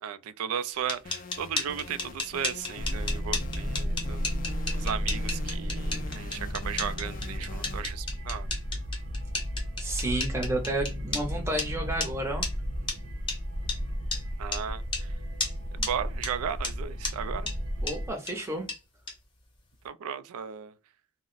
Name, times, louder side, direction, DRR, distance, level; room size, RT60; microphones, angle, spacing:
voice 1, 0.0-4.2 4.7-8.5 14.4-15.1 15.8-17.5 19.8-20.7, right 8 dB, 80° right, 0.3 m, -35 dB
sound 1, 0.7-11.2 11.6-11.7 12.0-12.1 12.4-12.5 12.9-13.0 13.3-13.4 13.7-13.8 14.1-14.2 14.5-14.6 14.9-15.0 15.4-15.5 15.8-15.9 16.2-16.3 16.6-16.7 17.0-17.1 17.5-17.6 17.9-18.0 18.3-18.4 18.7-18.8 19.1-19.2, left 3 dB, 20° left, 0.7 m, -32 dB
sound 2, 1.0-7.9, left 3 dB, 40° left, 0.3 m, -44 dB
sound 3, 2.8-18.1, equal, 60° right, 0.8 m, -34 dB
voice 2, 9.8-12.5 17.8-18.7, right 1 dB, 10° right, 0.6 m, -31 dB
2.4 x 2.0 x 3.8 m
head